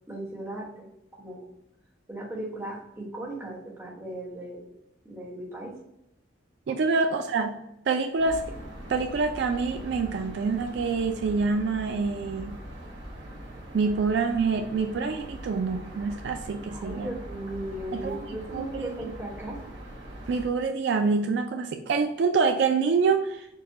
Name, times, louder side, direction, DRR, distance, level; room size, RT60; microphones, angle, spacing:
voice 1, 0.1-1.5 2.1-4.7 5.0-5.7 6.9-7.0 16.7-19.6, right 1 dB, 15° right, -5 dB, 1.1 m, -37 dB
voice 2, 6.7-8.4 8.9-12.6 13.7-17.1 17.9-18.2 18.5-18.8 20.3-23.5, right 4 dB, 65° right, 6 dB, 0.3 m, -26 dB
sound 1, 8.2-20.5, equal, 85° right, 1.1 m, -42 dB
4.5 x 2.2 x 4.0 m, 0.83 s
head